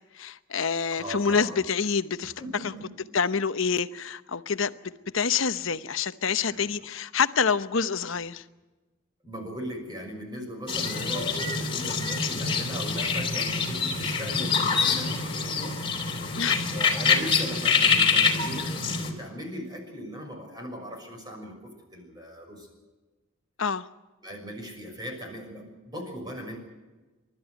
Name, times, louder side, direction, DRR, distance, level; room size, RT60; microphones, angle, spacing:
voice 1, 0.1-2.3 3.1-4.7 5.1-8.4 16.4-16.7 23.6-23.9, left 6 dB, 65° left, 0.9 m, -27 dB
voice 2, 0.9-1.6 2.4-2.9 6.4-6.9 9.2-15.8 16.7-22.7 24.2-26.6, equal, 20° right, 6.1 m, -39 dB
sound 1, 10.7-19.1, left 5 dB, 25° left, 3.2 m, -25 dB
30.0 x 13.0 x 9.1 m
head